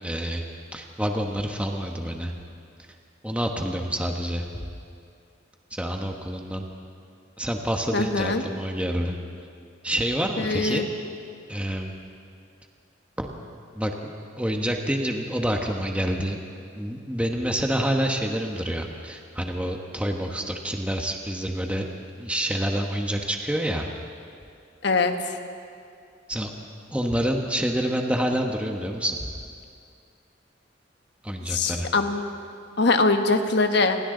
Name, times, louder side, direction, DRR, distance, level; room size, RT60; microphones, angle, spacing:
voice 1, 0.0-0.4 0.7-2.3 3.2-4.4 5.7-6.6 7.4-9.2 9.8-10.8 11.5-11.9 13.2-13.3 13.7-16.4 16.8-21.9 22.2-23.9 26.3-26.5 26.9-29.3 31.2-31.9, equal, 5° right, 2 dB, 1.2 m, -27 dB
voice 2, 7.9-8.4 10.4-10.9 24.8-25.4 31.5-32.3 32.8-34.0, left 3 dB, 65° left, 6 dB, 1.4 m, -22 dB
29.0 x 22.5 x 3.9 m, 2.4 s
head